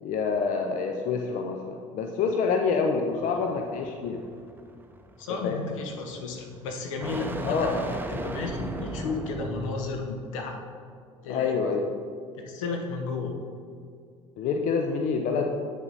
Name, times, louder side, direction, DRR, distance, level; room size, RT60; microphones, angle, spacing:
voice 1, 0.0-4.2 5.4-5.6 7.4-7.8 11.3-11.8 14.4-15.5, left 5 dB, 50° left, 3 dB, 0.7 m, -27 dB
sound 1, 3.1-10.2, right 2 dB, 10° right, 0.8 m, -37 dB
voice 2, 5.2-10.6 11.2-11.6 12.4-13.3, left 3 dB, 70° left, 3 dB, 1.2 m, -33 dB
8.3 x 6.8 x 4.1 m, 2.3 s
figure-of-eight pair, 65°, 17 cm